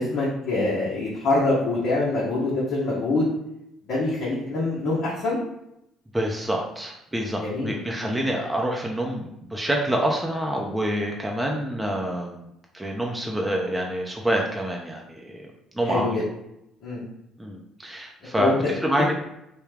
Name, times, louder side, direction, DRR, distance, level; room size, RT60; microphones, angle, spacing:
voice 1, 0.0-3.3 3.9-5.4 7.4-8.1 15.9-16.2 16.8-17.0 18.4-18.7, left 2 dB, 60° left, -8 dB, 1.0 m, -25 dB
voice 2, 6.1-12.5 12.7-15.4 15.7-16.2 17.4-19.1, right 1 dB, 10° right, -1 dB, 0.6 m, -27 dB
3.4 x 2.2 x 3.3 m, 0.82 s
hypercardioid pair, 55°, 0 cm